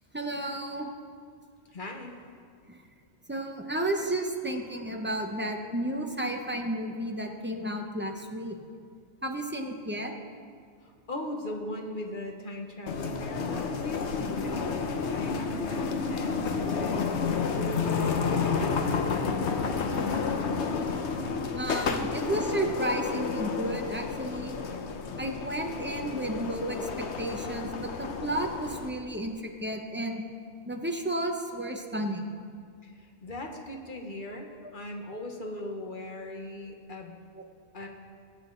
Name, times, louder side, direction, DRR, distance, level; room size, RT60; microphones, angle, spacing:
voice 1, 0.1-0.9 2.7-2.8 3.3-8.6 9.2-10.1 21.5-24.6 25.2-30.2 30.7-32.3, right 1 dB, 10° right, 2 dB, 0.8 m, -32 dB
voice 2, 1.7-2.1 10.8-17.1 17.5-20.3 32.8-37.2 37.7-37.9, left 1 dB, 45° left, 2 dB, 1.4 m, -39 dB
sound 1, 12.9-28.9, left 5 dB, 75° left, 1.1 m, -30 dB
20.5 x 8.0 x 3.9 m, 2.2 s
omnidirectional pair, 1.2 m